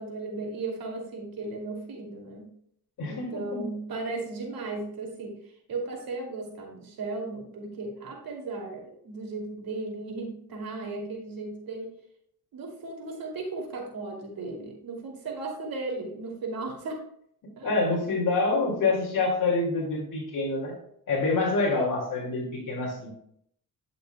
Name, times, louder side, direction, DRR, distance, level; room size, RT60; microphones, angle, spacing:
voice 1, 0.0-2.5 3.1-12.0 12.5-17.0 17.6-17.7, right 3 dB, 65° right, 0 dB, 2.7 m, -36 dB
voice 2, 3.0-3.6 17.6-20.8 21.1-23.1, left 3 dB, 55° left, -4 dB, 2.4 m, -26 dB
11.5 x 6.4 x 2.3 m, 0.69 s
cardioid pair, 75°, 38 cm